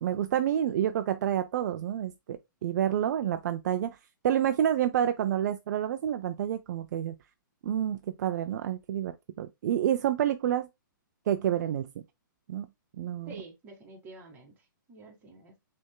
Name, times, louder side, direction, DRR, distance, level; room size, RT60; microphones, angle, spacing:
voice 1, 0.0-4.0 4.2-7.1 7.6-10.7 11.3-11.9 12.5-12.7 13.0-13.3, right 10 dB, 55° right, 0.4 m, -28 dB
voice 2, 13.3-15.6, right 3 dB, 20° right, 1.8 m, -48 dB
6.2 x 3.4 x 2.2 m
hypercardioid pair, 140°, 11 cm